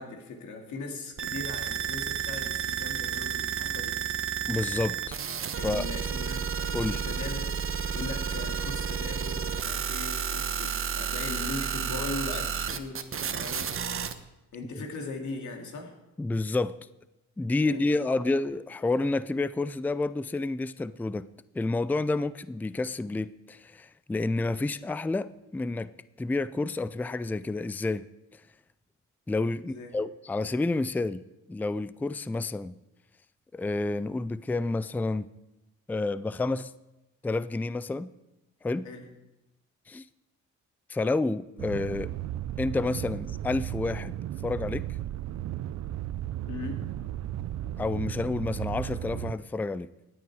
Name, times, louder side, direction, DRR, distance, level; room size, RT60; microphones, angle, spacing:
voice 1, 0.0-4.0 5.6-7.5 7.9-13.8 14.5-15.9 17.6-18.4 29.6-29.9 38.8-39.0 46.5-46.8, left 3 dB, 75° left, 2.7 m, -39 dB
sound 1, 1.2-14.1, right 7 dB, 45° right, 1.1 m, -31 dB
voice 2, 4.5-5.2 5.6-5.8 6.7-7.0 16.2-16.8 17.4-21.3 21.5-25.9 26.2-28.1 28.3-28.4 29.3-31.2 31.5-32.8 33.5-35.2 35.9-36.7 37.2-38.1 38.6-38.9 39.9-40.1 40.9-42.1 42.6-44.2 44.4-44.9 47.8-49.9, left 2 dB, 5° left, 0.4 m, -29 dB
sound 2, 41.6-49.3, right 12 dB, 65° right, 0.6 m, -35 dB
17.5 x 9.4 x 4.8 m
cardioid pair, 90°, 30 cm